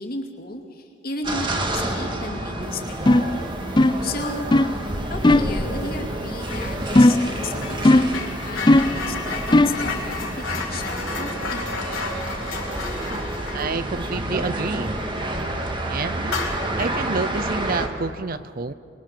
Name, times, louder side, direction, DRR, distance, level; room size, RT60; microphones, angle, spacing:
voice 1, 0.0-3.4 3.8-4.5 5.0-12.1, left 2 dB, 50° left, 3 dB, 2.5 m, -34 dB
sound 1, 1.2-17.9, right 1 dB, 25° right, 1.9 m, -29 dB
sound 2, 3.1-3.3 3.8-4.1 4.5-4.8 5.2-5.6 6.9-7.3 7.8-8.2 8.7-9.0 9.5-9.8, left 1 dB, 20° left, 0.5 m, -16 dB
sound 3, 6.4-6.8 7.0-15.2 15.5-15.7 16.2-17.1, left 4 dB, 90° left, 3.8 m, -33 dB
voice 2, 13.5-14.9 15.9-16.3 16.8-18.7, right 4 dB, 45° right, 14 dB, 0.7 m, -28 dB
25.5 x 22.0 x 6.7 m, 2.4 s
head